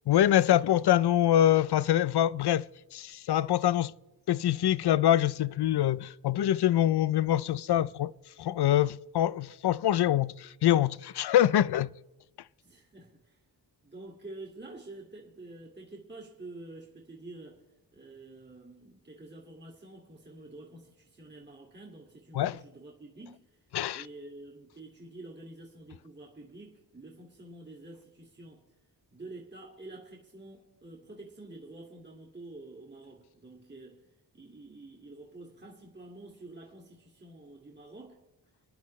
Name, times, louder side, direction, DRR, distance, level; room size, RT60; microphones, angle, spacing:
voice 1, 0.1-3.9 4.3-8.1 8.4-11.9 22.3-22.6 23.7-24.0, left 12 dB, 65° left, 0.5 m, -25 dB
voice 2, 12.6-13.4 13.8-17.6 17.9-23.4 23.9-28.6 29.1-34.0 34.3-38.2, right 2 dB, 25° right, 2.1 m, -48 dB
27.5 x 10.5 x 3.2 m
wide cardioid pair, 80°, 43 cm